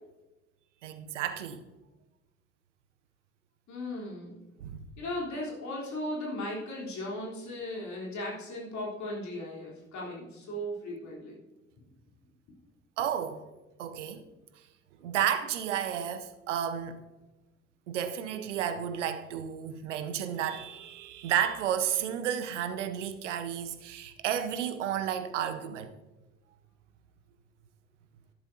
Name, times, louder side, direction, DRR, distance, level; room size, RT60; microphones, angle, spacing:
voice 1, 0.8-1.6 4.6-4.8 13.0-13.4 13.8-14.2 15.0-17.0 17.9-25.9, right 9 dB, 80° right, 0.8 m, -32 dB
voice 2, 3.7-4.4 5.0-11.4, left 1 dB, 50° left, 3.6 m, -37 dB
11.5 x 11.5 x 2.8 m
hypercardioid pair, 55°, 35 cm